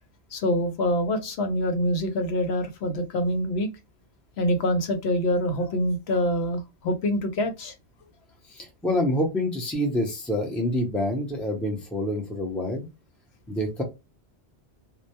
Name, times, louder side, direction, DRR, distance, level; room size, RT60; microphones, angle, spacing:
voice 1, 0.3-3.7 4.4-7.7, equal, 70° left, 0.8 m, -25 dB
voice 2, 8.5-12.9 13.5-13.8, left 1 dB, ahead, 0.5 m, -27 dB
2.2 x 2.1 x 2.8 m
omnidirectional pair, 1.1 m